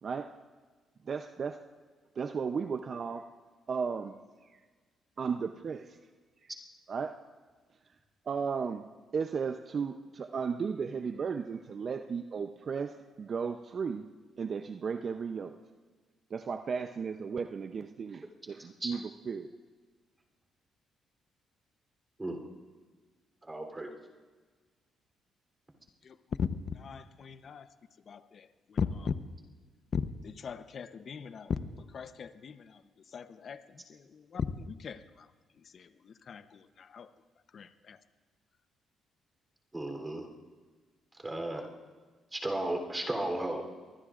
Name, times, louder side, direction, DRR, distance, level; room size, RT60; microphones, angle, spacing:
voice 1, 0.0-0.3 1.1-1.6 2.2-3.3 3.7-4.2 4.5-4.6 5.2-6.0 6.9-7.2 8.3-8.9 9.1-14.1 14.4-15.6 16.3-19.5, right 6 dB, 45° right, 7 dB, 0.6 m, -35 dB
voice 2, 23.4-23.9 39.7-40.3 41.2-41.7 42.3-43.6, right 1 dB, 15° right, 3 dB, 3.4 m, -34 dB
voice 3, 26.1-26.5 26.8-27.7 28.1-29.1 29.9-31.5 31.9-32.8 33.1-33.6 33.9-35.0 35.7-37.1 37.5-38.0, left 6 dB, 50° left, 11 dB, 0.8 m, -38 dB
24.5 x 20.0 x 2.5 m, 1.4 s
cardioid pair, 90°, 0 cm